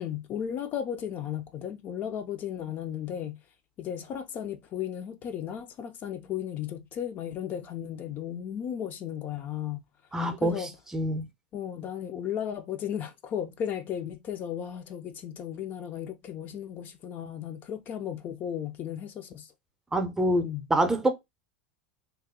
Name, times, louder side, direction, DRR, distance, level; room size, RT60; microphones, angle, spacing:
voice 1, 0.0-3.4 3.8-9.8 10.4-10.7 11.5-19.5 20.4-20.7, left 9 dB, 40° left, 0.5 m, -35 dB
voice 2, 10.1-10.6 10.9-11.2 19.9-21.1, right 1 dB, 10° right, 0.6 m, -26 dB
2.9 x 2.1 x 3.6 m
supercardioid pair, 115°, 5 cm